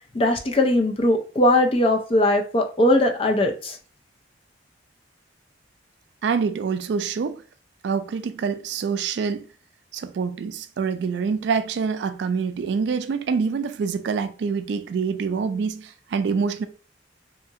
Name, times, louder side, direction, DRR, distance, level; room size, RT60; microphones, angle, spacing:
voice 1, 0.1-3.8, left 1 dB, 30° left, 0.4 m, -20 dB
voice 2, 6.2-7.4 7.8-9.4 9.9-16.7, right 5 dB, 65° right, 0.3 m, -26 dB
2.8 x 2.4 x 2.6 m
head